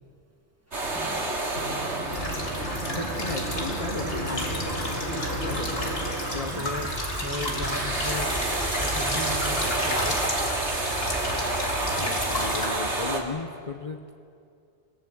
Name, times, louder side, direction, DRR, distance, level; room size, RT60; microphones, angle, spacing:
sound 1, 0.7-13.2, right 2 dB, 90° right, 2.8 m, -30 dB
voice 1, 0.9-1.2 6.5-6.9 7.2-10.2, equal, 15° right, 4 dB, 1.8 m, -36 dB
sound 2, 2.1-12.7, left 1 dB, 65° left, 3.3 m, -32 dB
voice 2, 2.9-6.8 12.0-14.2, left 3 dB, 35° left, 4 dB, 0.9 m, -36 dB
Rain, 4.7-12.2, right 5 dB, 65° right, 1.4 m, -44 dB
28.5 x 16.5 x 8.0 m, 2.4 s
omnidirectional pair, 1.1 m